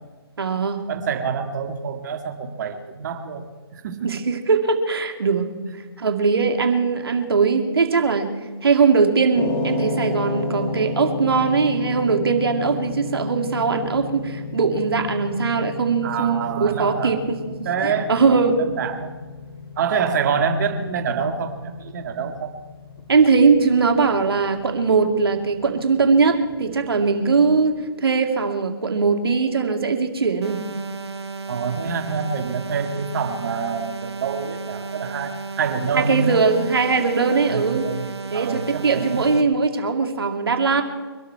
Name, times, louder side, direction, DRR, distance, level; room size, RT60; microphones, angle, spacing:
voice 1, 0.4-0.9 4.0-5.6 6.0-18.6 23.1-30.7 35.9-37.9 38.3-40.8, right 4 dB, 65° right, 5 dB, 2.4 m, -20 dB
voice 2, 0.9-4.1 16.0-17.1 17.6-19.1 19.8-22.6 31.5-36.4 37.5-38.1 38.3-39.3, right 6 dB, 45° right, 6 dB, 2.0 m, -26 dB
sound 1, 9.3-27.6, left 3 dB, 25° left, 2.4 m, -33 dB
sound 2, 30.4-39.4, right 4 dB, 80° right, 1.7 m, -34 dB
24.0 x 12.5 x 4.7 m, 1.4 s
figure-of-eight pair, 140°, 13 cm